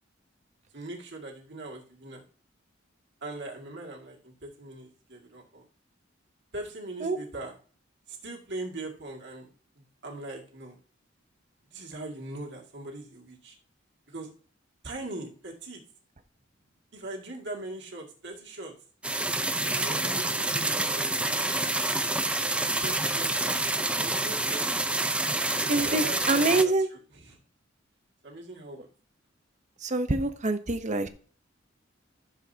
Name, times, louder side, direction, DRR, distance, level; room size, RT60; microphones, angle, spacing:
voice 1, 0.7-2.2 3.2-5.6 6.5-7.6 8.1-10.8 11.7-13.6 14.1-14.3 14.8-15.8 16.9-18.7 19.8-21.1 22.0-22.2 22.6-24.7 25.5-27.4 28.2-28.9, right 2 dB, 65° right, 2.2 m, -41 dB
sound 1, 19.0-26.6, right 2 dB, 5° right, 0.5 m, -28 dB
voice 2, 25.7-26.9 29.8-31.1, right 2 dB, 40° right, 0.8 m, -25 dB
14.0 x 7.1 x 2.8 m
head